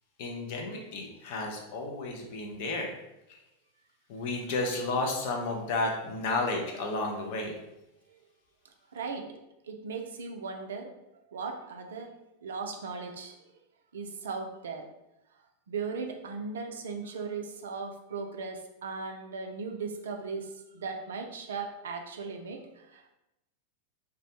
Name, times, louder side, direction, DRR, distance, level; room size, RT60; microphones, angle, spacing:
voice 1, 0.2-2.9 3.3-3.4 4.1-7.6, left 2 dB, 50° left, 1 dB, 0.5 m, -32 dB
voice 2, 8.9-9.3 9.6-10.9 11.3-12.1 12.4-13.4 13.9-14.8 15.7-23.1, right 4 dB, 65° right, 4 dB, 0.3 m, -37 dB
2.2 x 2.1 x 2.8 m, 0.90 s
figure-of-eight pair, 90°, 0 cm